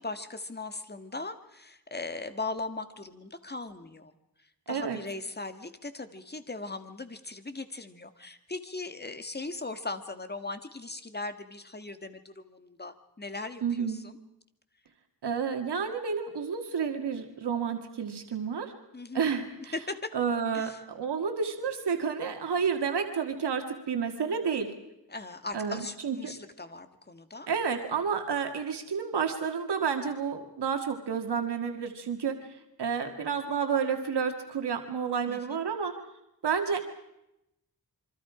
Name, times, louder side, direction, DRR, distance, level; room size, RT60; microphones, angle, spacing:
voice 1, 0.0-4.1 4.7-14.2 18.9-19.3 19.7-20.1 20.5-20.8 25.1-27.5 35.3-35.6, left 3 dB, 25° left, 9 dB, 1.7 m, -39 dB
voice 2, 4.7-5.0 13.6-14.0 15.2-18.7 19.1-19.7 20.1-24.7 25.5-26.3 27.5-32.5 32.8-36.0 36.4-36.8, right 6 dB, 85° right, 5 dB, 2.0 m, -30 dB
27.0 x 24.5 x 5.0 m, 0.87 s
wide cardioid pair, 90°, 39 cm